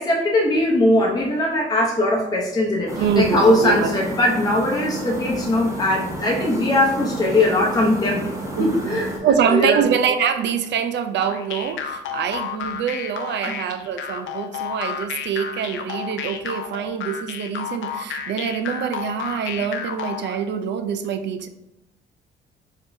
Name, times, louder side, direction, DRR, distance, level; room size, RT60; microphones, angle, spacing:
voice 1, 0.0-8.2 8.6-9.1 9.5-9.9, left 1 dB, 20° left, -3 dB, 0.8 m, -20 dB
sound 1, 2.9-9.2, right 1 dB, 15° right, 1.0 m, -31 dB
voice 2, 3.0-4.0 8.6-21.5, right 7 dB, 65° right, 8 dB, 0.5 m, -24 dB
sound 2, 11.2-20.4, left 7 dB, 75° left, 0.6 m, -31 dB
4.9 x 3.7 x 2.6 m, 0.87 s
cardioid pair, 90°, 20 cm